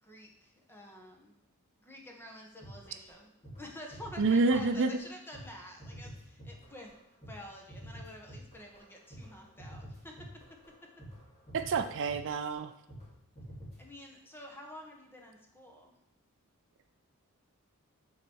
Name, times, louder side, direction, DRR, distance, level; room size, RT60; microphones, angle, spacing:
voice 1, 0.0-1.4 1.8-3.3 3.6-6.9 7.3-10.3 13.8-15.9, left 1 dB, 10° left, 1 dB, 1.2 m, -49 dB
sound 1, 2.6-3.2 3.4-3.6 3.9-5.1 5.3-13.1 13.3-13.8, equal, 30° left, 2.7 m, -48 dB
voice 2, 4.2-4.9 11.5-12.7, right 3 dB, 60° right, 8 dB, 0.4 m, -28 dB
9.4 x 4.0 x 4.6 m, 0.79 s
head